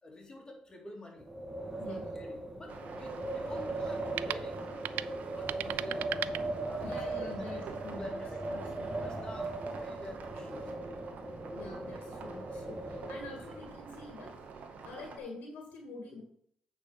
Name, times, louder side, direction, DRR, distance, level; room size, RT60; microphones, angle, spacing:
voice 1, 0.0-1.4 1.9-4.7 5.3-6.3 6.6-10.8, left 2 dB, 25° left, 0 dB, 2.9 m, -49 dB
Wind, 1.2-13.8, right 2 dB, 20° right, 2.0 m, -39 dB
sound 1, 1.7-7.1, right 13 dB, 80° right, 0.3 m, -41 dB
sound 2, 2.7-15.2, right 5 dB, 65° right, 1.6 m, -47 dB
voice 2, 6.8-8.2 8.5-8.9 11.5-14.3 14.8-16.2, left 3 dB, 80° left, 2 dB, 1.8 m, -46 dB
8.7 x 4.8 x 5.4 m, 0.66 s
cardioid pair, 75°, 3 cm